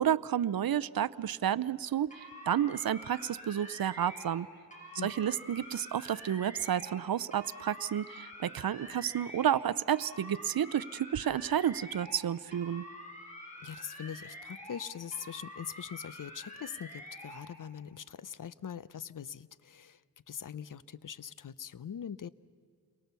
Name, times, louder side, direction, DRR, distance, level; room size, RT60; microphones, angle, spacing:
voice 1, 0.0-4.5 5.0-12.9, right 10 dB, 65° right, 16 dB, 0.6 m, -31 dB
sound 1, 2.1-4.4 4.7-7.0 7.3-9.6 9.9-12.2 12.5-14.8 15.1-17.4, left 1 dB, 20° left, 5.7 m, -47 dB
voice 2, 13.6-20.0 20.3-22.3, left 8 dB, 55° left, 18 dB, 0.7 m, -42 dB
29.5 x 23.0 x 6.9 m, 2.3 s
wide cardioid pair, 75°, 39 cm